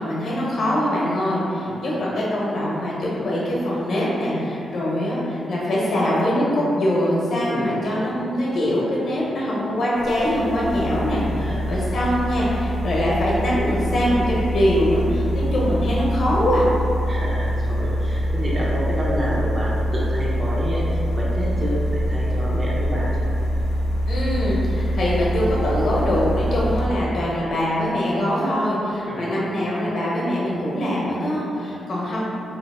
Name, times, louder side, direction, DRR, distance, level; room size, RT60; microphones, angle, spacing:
voice 1, 0.0-16.6 24.1-32.2, equal, 50° left, -6 dB, 0.9 m, -23 dB
voice 2, 7.4-7.8 11.4-11.7 17.1-23.3 29.1-29.3, equal, 20° right, -6 dB, 0.6 m, -29 dB
sound 1, 10.0-26.9, equal, 75° left, 0.4 m, -24 dB
3.0 x 2.8 x 4.2 m, 2.8 s
wide cardioid pair, 170°, 0 cm